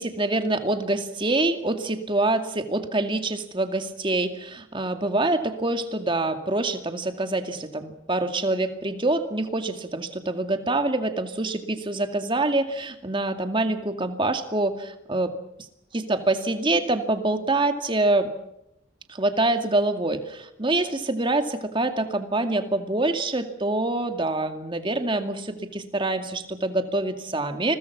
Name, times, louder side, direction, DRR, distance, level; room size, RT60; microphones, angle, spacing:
voice 1, 0.0-15.3 15.9-18.3 19.1-27.8, right 2 dB, 25° right, 7 dB, 2.2 m, -25 dB
29.5 x 21.5 x 6.0 m, 0.83 s
head